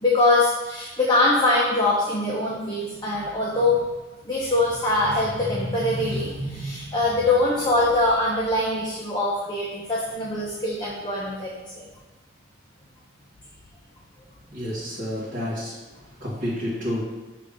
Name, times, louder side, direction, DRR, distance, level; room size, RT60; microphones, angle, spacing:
voice 1, 0.0-3.9 4.3-11.5 11.8-11.9, left 2 dB, 20° left, -5 dB, 0.8 m, -23 dB
voice 2, 14.5-15.8 16.2-17.0, equal, 40° right, -10 dB, 1.5 m, -29 dB
6.6 x 3.3 x 5.1 m, 1.2 s
head